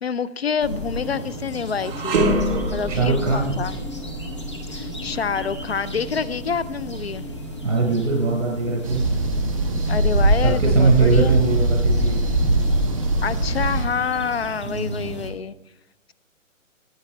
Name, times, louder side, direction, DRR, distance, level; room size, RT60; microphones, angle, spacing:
voice 1, 0.0-2.2 2.7-3.8 4.7-7.2 9.9-11.4 13.2-15.5, left 6 dB, 50° left, 17 dB, 0.5 m, -27 dB
sound 1, 0.6-15.3, equal, 20° left, 1.1 m, -34 dB
sound 2, 1.8-11.1 11.5-11.7 12.5-13.4, right 1 dB, 10° right, 1.5 m, -29 dB
voice 2, 2.9-3.5 7.6-9.0 10.4-12.2 14.6-15.2, right 4 dB, 65° right, -1 dB, 4.8 m, -21 dB
sound 3, 8.8-13.8, right 1 dB, 25° right, 1.0 m, -21 dB
18.5 x 8.9 x 3.3 m, 0.87 s
hypercardioid pair, 180°, 40 cm